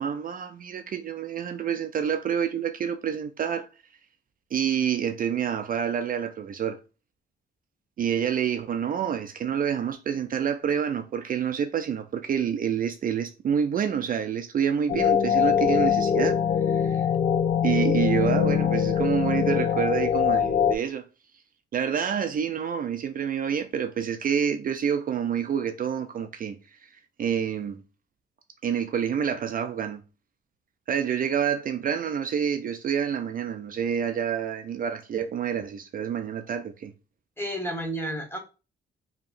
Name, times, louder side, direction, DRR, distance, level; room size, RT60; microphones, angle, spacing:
voice 1, 0.0-3.7 4.5-6.8 8.0-17.1 17.6-21.1 21.7-27.8 28.6-30.0 30.9-36.9, right 8 dB, 45° right, 0.4 m, -28 dB
sound 1, 14.9-20.8, left 8 dB, 35° left, 0.5 m, -23 dB
voice 2, 37.4-38.4, equal, 10° left, 1.2 m, -31 dB
4.8 x 2.8 x 2.5 m
cardioid pair, 90°, 20 cm